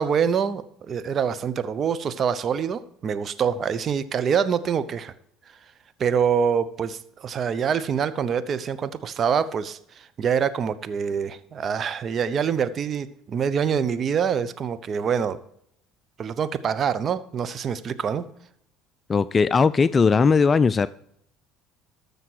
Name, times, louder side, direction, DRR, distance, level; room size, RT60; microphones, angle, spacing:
voice 1, 0.0-5.1 6.0-15.4 16.2-18.3, right 7 dB, 45° right, 0.7 m, -25 dB
voice 2, 19.1-20.9, left 5 dB, 30° left, 0.4 m, -18 dB
13.0 x 6.8 x 4.7 m
hypercardioid pair, 75°, 0 cm